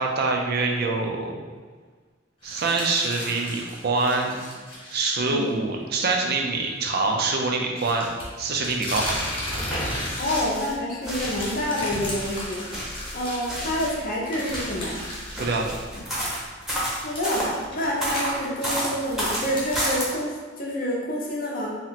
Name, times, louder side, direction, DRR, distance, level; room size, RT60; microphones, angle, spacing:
voice 1, 0.0-1.4 2.4-4.4 4.9-8.1 8.4-9.1 15.3-15.7, right 3 dB, 55° right, 2 dB, 0.4 m, -25 dB
sound 1, 2.4-5.1 5.5-5.6 7.8-10.8 11.0-15.8 16.1-16.2 17.0-20.0, left 1 dB, 30° left, 1.0 m, -35 dB
sound 2, 9.5-10.7 11.0-14.0 14.4-17.5 18.0-20.1, equal, ahead, 0.7 m, -31 dB
voice 2, 10.2-15.0 17.0-21.8, left 1 dB, 50° left, -3 dB, 0.6 m, -28 dB
2.8 x 2.0 x 4.0 m, 1.5 s
head